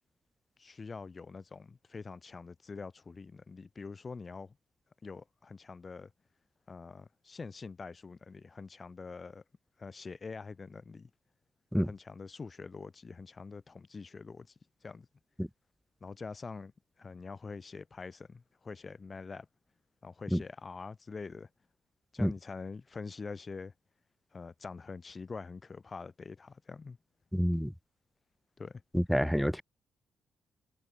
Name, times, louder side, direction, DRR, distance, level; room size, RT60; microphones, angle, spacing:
voice 1, 0.6-4.6 5.0-6.1 6.7-9.4 9.8-11.1 11.8-14.5 14.8-15.1 16.0-16.7 17.0-19.5 20.0-21.5 22.1-23.7 24.3-27.0 28.6-28.8, left 4 dB, 30° left, 7.0 m, -45 dB
voice 2, 27.3-27.7 28.9-29.6, equal, ahead, 0.7 m, -28 dB
cardioid pair, 120°, 0 cm